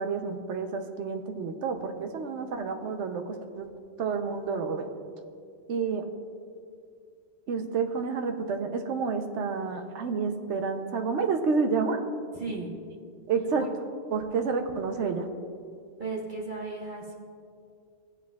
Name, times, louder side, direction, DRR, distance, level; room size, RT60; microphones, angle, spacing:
voice 1, 0.0-3.7 4.0-4.9 5.7-6.0 7.5-12.0 13.3-13.6 14.1-15.3, right 5 dB, 80° right, 6 dB, 1.0 m, -29 dB
voice 2, 2.2-2.7 12.4-12.7 13.6-13.7 16.0-17.1, right 3 dB, 45° right, -2 dB, 1.4 m, -36 dB
16.0 x 8.4 x 2.3 m, 2.3 s
omnidirectional pair, 1.2 m